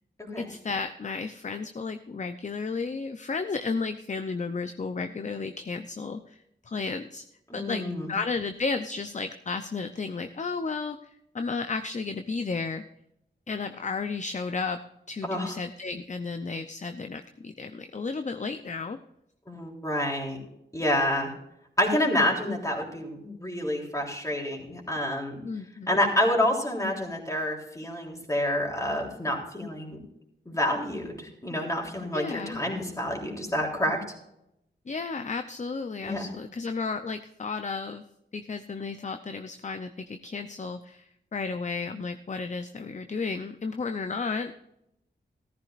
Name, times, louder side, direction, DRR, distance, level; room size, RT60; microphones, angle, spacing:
voice 1, 0.4-6.4 6.6-7.2 7.5-12.8 13.5-14.8 15.1-19.0 25.4-25.9 32.1-32.6 34.9-38.0 38.3-44.7, left 4 dB, 40° left, 8 dB, 0.7 m, -33 dB
voice 2, 7.5-8.1 15.3-15.5 19.5-20.4 20.7-21.3 21.8-25.4 25.9-30.0 30.5-34.0 36.0-36.3, left 1 dB, 15° left, -1 dB, 3.5 m, -28 dB
14.5 x 14.0 x 2.5 m, 0.81 s
wide cardioid pair, 75°, 19 cm